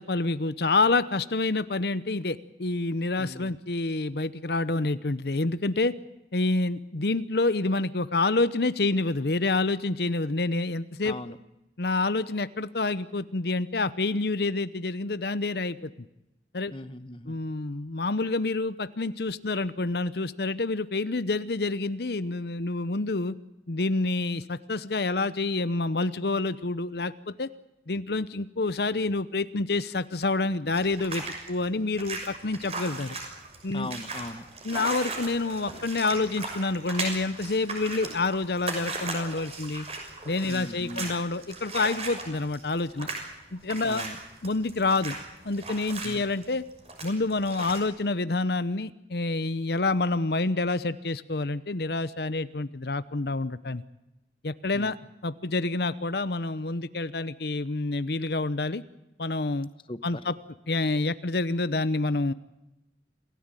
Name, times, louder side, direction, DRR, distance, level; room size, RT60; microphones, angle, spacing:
voice 1, 0.0-5.9 6.3-11.3 11.8-15.9 16.5-16.7 17.3-23.4 23.7-27.5 27.9-33.2 33.6-33.9 34.6-39.9 40.3-43.1 43.5-44.0 44.4-45.2 45.4-46.6 47.0-53.8 54.4-55.0 55.2-58.8 59.2-59.7 60.0-60.4 60.7-62.3, left 3 dB, 65° left, 15 dB, 0.8 m, -28 dB
voice 2, 3.2-3.5 11.0-11.4 16.7-17.3 33.7-34.4 40.5-41.1 43.9-44.2 46.0-46.2 54.7-54.9 59.9-60.0, left 1 dB, 30° left, 13 dB, 1.1 m, -38 dB
sound 1, 30.7-47.8, right 3 dB, 35° right, 6.2 m, -37 dB
27.5 x 17.0 x 9.1 m, 0.92 s
head